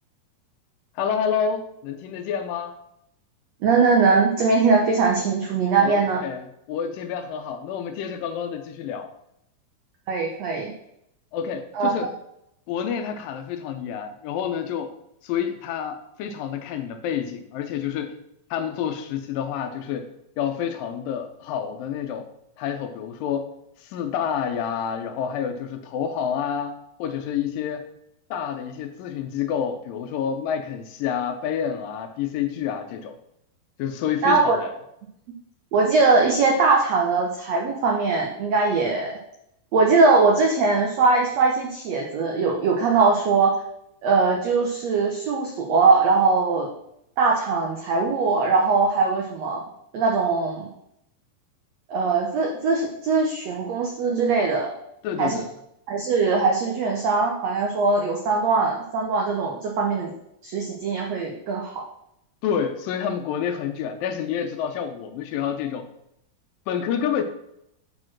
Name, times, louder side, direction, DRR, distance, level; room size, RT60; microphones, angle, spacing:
voice 1, 1.0-2.7 5.8-9.1 11.3-12.1 12.7-14.9 15.2-18.2 18.5-20.1 20.4-22.3 22.6-23.5 23.8-26.7 27.0-27.9 28.3-33.1 33.8-34.8 55.0-55.5 62.4-65.9 66.7-67.2, left 8 dB, 80° left, 7 dB, 2.1 m, -28 dB
voice 2, 3.6-6.2 10.1-10.7 11.7-11.9 34.2-34.6 35.7-39.1 39.7-43.5 44.0-46.7 47.2-49.6 49.9-50.7 51.9-54.7 55.2-55.4 55.9-60.1 60.4-61.8, right 4 dB, 85° right, 1 dB, 1.5 m, -21 dB
6.7 x 4.4 x 6.0 m, 0.78 s
omnidirectional pair, 4.2 m